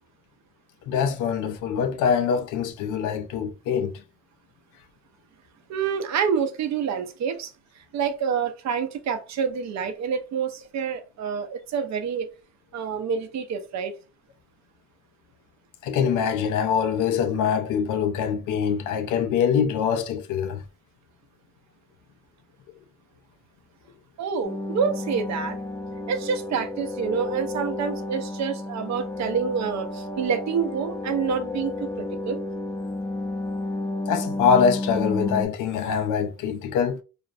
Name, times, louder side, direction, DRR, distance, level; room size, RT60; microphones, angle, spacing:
voice 1, 0.9-3.9 15.8-20.6 34.1-37.0, left 7 dB, 85° left, 0.5 m, -24 dB
voice 2, 5.7-7.5 7.9-12.3 12.7-13.9 24.2-25.6 26.1-32.4, right 6 dB, 65° right, 0.6 m, -27 dB
sound 1, 24.4-35.5, left 2 dB, 10° left, 0.4 m, -32 dB
2.5 x 2.0 x 2.5 m
cardioid pair, 90°, 30 cm